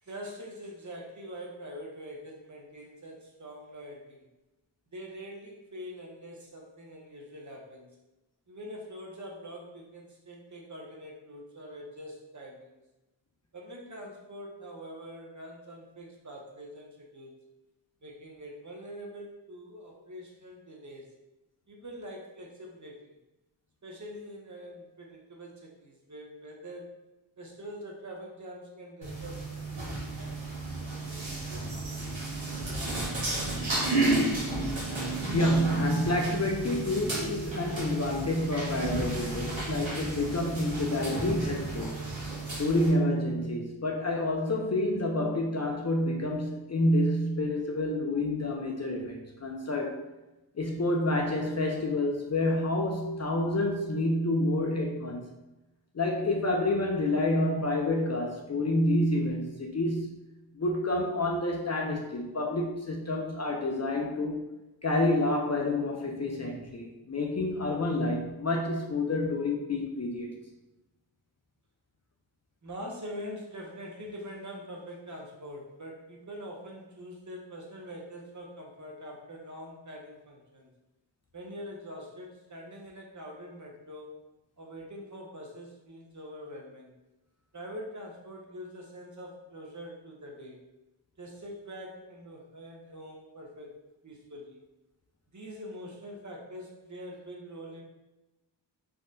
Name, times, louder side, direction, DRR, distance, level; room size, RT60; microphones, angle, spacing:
voice 1, 0.0-4.3 4.9-7.9 8.5-12.7 13.5-17.3 18.0-21.1 21.7-23.0 23.8-26.9 27.4-30.4 30.8-31.2 72.6-80.7 81.3-84.2 84.6-86.9 87.5-90.6 91.2-93.7 94.0-94.6 95.3-97.8, equal, 40° right, -1 dB, 0.7 m, -44 dB
sound 1, 29.0-42.9, right 2 dB, 85° right, 1.0 m, -32 dB
voice 2, 35.3-42.0 42.6-50.0 50.6-55.2 55.9-60.1 60.6-64.5 64.8-70.3, left 1 dB, 40° left, 1 dB, 0.4 m, -28 dB
3.5 x 2.2 x 2.5 m, 1.0 s
wide cardioid pair, 55°, 44 cm